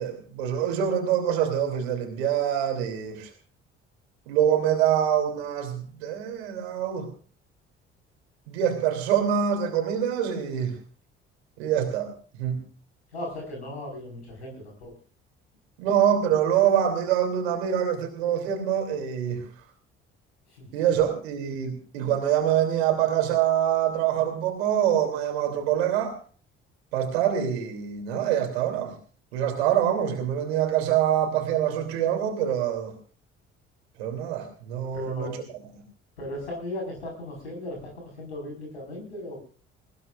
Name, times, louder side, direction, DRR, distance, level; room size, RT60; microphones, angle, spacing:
voice 1, 0.0-3.3 4.3-7.1 8.5-10.8 11.6-12.1 12.4-12.6 15.8-19.4 20.7-26.2 26.9-28.9 29.3-32.9 34.0-35.4, right 9 dB, 75° right, 5 dB, 3.4 m, -25 dB
voice 2, 13.1-14.9 20.5-20.7 21.0-21.1 34.9-35.4 36.2-39.4, left 1 dB, 85° left, 0 dB, 5.3 m, -37 dB
20.0 x 20.0 x 2.6 m, 0.40 s
figure-of-eight pair, 50°, 32 cm